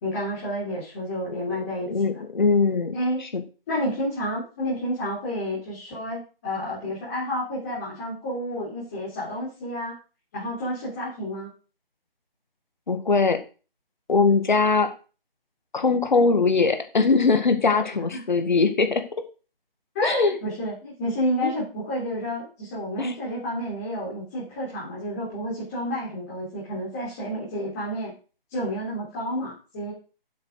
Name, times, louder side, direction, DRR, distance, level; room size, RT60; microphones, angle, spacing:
voice 1, 0.0-1.9 2.1-2.2 2.9-3.3 3.7-10.0 10.3-11.5 17.9-18.2 19.9-28.1 28.5-29.9, equal, 15° left, -8 dB, 3.7 m, -30 dB
voice 2, 1.9-2.9 3.3-3.4 12.9-13.4 14.1-14.9 15.7-19.0 20.0-20.4 21.4-21.6 23.0-23.2, left 4 dB, 50° left, 8 dB, 2.0 m, -21 dB
7.9 x 7.2 x 6.4 m, 0.35 s
figure-of-eight pair, 170°, 29 cm